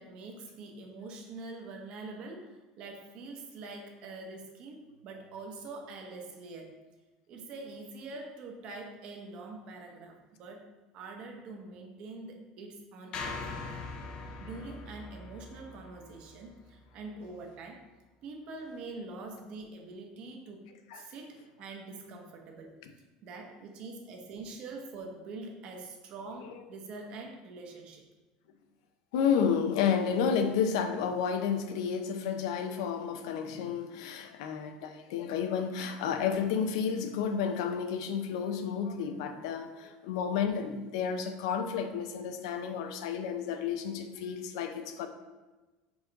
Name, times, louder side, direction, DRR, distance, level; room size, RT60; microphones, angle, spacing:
voice 1, 0.0-6.8 7.3-10.7 10.9-13.8 14.4-17.9 18.2-20.7 20.9-22.8 23.2-28.1, right 3 dB, 40° right, 2 dB, 0.9 m, -44 dB
sound 1, 13.1-17.4, left 3 dB, 30° left, 0.5 m, -42 dB
voice 2, 29.1-45.1, left 7 dB, 90° left, 7 dB, 0.6 m, -31 dB
4.8 x 3.8 x 5.2 m, 1.2 s
cardioid pair, 170°, 3 cm